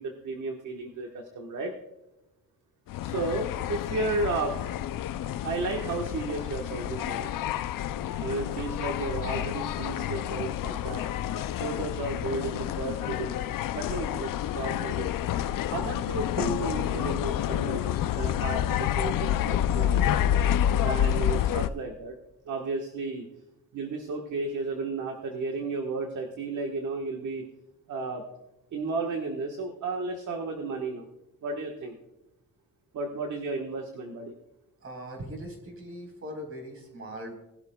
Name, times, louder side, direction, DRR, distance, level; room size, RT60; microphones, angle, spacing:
voice 1, 0.0-1.7 3.0-4.5 5.4-7.3 8.2-11.0 11.6-13.4 13.7-15.1 15.7-20.2 20.8-22.2 22.4-23.3 23.7-27.5 27.9-28.2 28.7-31.1 31.4-32.0 32.9-34.3, right 3 dB, 55° right, 2 dB, 1.3 m, -33 dB
sound 1, 2.9-21.7, left 11 dB, 65° left, 0.5 m, -29 dB
voice 2, 34.8-37.3, equal, 40° right, 2 dB, 3.9 m, -40 dB
20.0 x 12.0 x 2.2 m, 0.96 s
wide cardioid pair, 175°, 36 cm